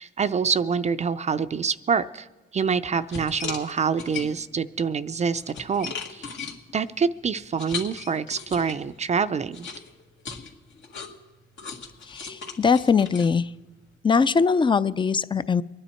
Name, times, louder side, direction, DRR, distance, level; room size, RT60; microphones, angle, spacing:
voice 1, 0.0-2.3 2.5-6.3 6.7-9.7, right 6 dB, 35° right, 12 dB, 0.5 m, -26 dB
sound 1, 2.6-2.7 3.1-4.6 5.1-8.9 9.5-13.9, left 5 dB, 70° left, 2.1 m, -38 dB
voice 2, 12.1-13.5 14.0-15.6, left 5 dB, 25° left, 16 dB, 0.5 m, -21 dB
24.5 x 9.8 x 4.4 m, 1.2 s
cardioid pair, 90°, 20 cm